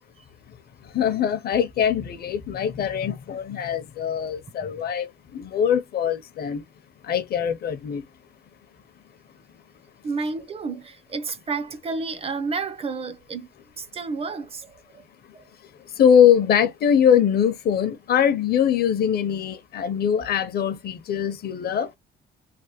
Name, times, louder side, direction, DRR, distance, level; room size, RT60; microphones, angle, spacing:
voice 1, 0.9-6.6 7.0-8.0 16.0-21.9, left 8 dB, 50° left, 0.6 m, -22 dB
voice 2, 10.0-13.5 13.8-14.7 15.3-15.4, right 4 dB, 30° right, 0.4 m, -30 dB
3.3 x 2.1 x 2.8 m
cardioid pair, 140°, 21 cm